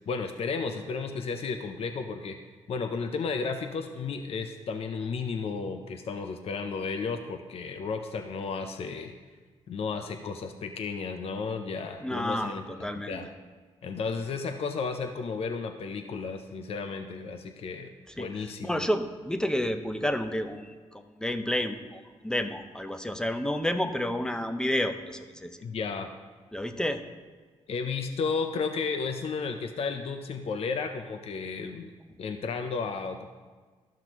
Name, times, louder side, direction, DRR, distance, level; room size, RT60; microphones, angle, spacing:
voice 1, 0.1-2.4 2.7-9.1 9.7-12.6 12.9-13.3 13.8-17.9 18.2-18.9 25.6-26.1 27.7-31.9 32.2-33.3, left 5 dB, 55° left, 6 dB, 0.6 m, -33 dB
voice 2, 12.0-13.2 18.1-25.6 26.5-27.0, left 1 dB, 5° left, 8 dB, 0.6 m, -30 dB
12.5 x 5.8 x 3.0 m, 1.4 s
cardioid pair, 70°, 12 cm